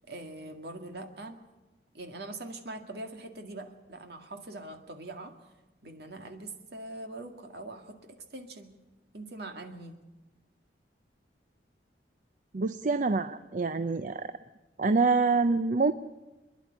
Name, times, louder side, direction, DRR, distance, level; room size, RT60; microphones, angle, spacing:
voice 1, 0.0-1.4 1.9-5.3 5.8-8.7 9.1-10.0, right 2 dB, 65° right, 5 dB, 2.1 m, -42 dB
voice 2, 12.5-14.3 14.8-15.9, right 4 dB, 45° right, 11 dB, 0.6 m, -26 dB
26.0 x 10.5 x 9.8 m, 1.1 s
head